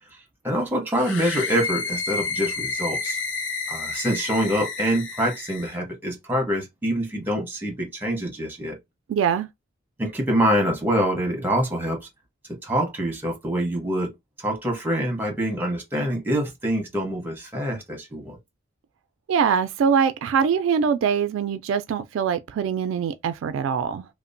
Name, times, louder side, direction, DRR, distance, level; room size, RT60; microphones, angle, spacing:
voice 1, 0.4-3.2 3.7-8.8 10.0-12.0 12.5-14.1 14.4-18.4, equal, 10° right, 0.9 m, -25 dB
sound 1, 0.9-5.8, left 4 dB, 65° left, 0.5 m, -30 dB
voice 2, 9.1-9.5 19.3-24.0, right 7 dB, 80° right, 0.3 m, -23 dB
2.8 x 2.0 x 2.5 m
head